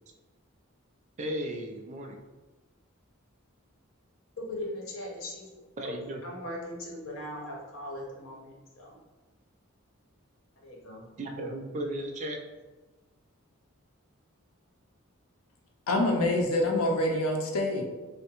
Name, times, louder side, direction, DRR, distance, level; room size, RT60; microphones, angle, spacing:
voice 1, 1.2-2.2 5.8-6.2 11.2-12.4, right 1 dB, 35° right, 2 dB, 0.3 m, -35 dB
voice 2, 4.4-5.5 5.8-5.9 6.2-9.0 10.6-11.1, left 1 dB, 65° left, -3 dB, 0.8 m, -39 dB
voice 3, 15.9-17.8, left 1 dB, 85° left, 2 dB, 0.5 m, -26 dB
3.5 x 2.1 x 2.8 m, 1.2 s
head